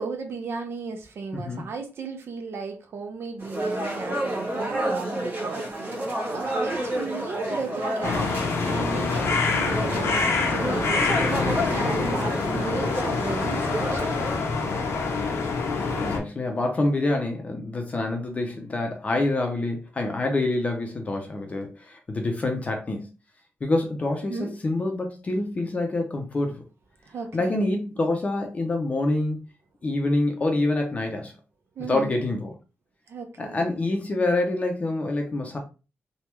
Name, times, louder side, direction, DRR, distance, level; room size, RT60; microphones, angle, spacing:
voice 1, 0.0-6.0 6.3-14.1 24.2-24.5 27.1-27.6 31.8-32.2 33.1-33.7, right 4 dB, 65° right, 4 dB, 0.6 m, -35 dB
voice 2, 1.3-1.7 16.0-23.1 23.6-26.6 27.3-29.4 29.8-31.3 31.8-32.5 33.4-35.6, left 2 dB, 30° left, 3 dB, 0.5 m, -26 dB
sound 1, 3.4-14.4, right 1 dB, 45° right, 1.2 m, -30 dB
sound 2, 8.0-16.2, left 4 dB, 80° left, 0.7 m, -26 dB
3.3 x 2.2 x 3.0 m, 0.32 s
wide cardioid pair, 145°, 5 cm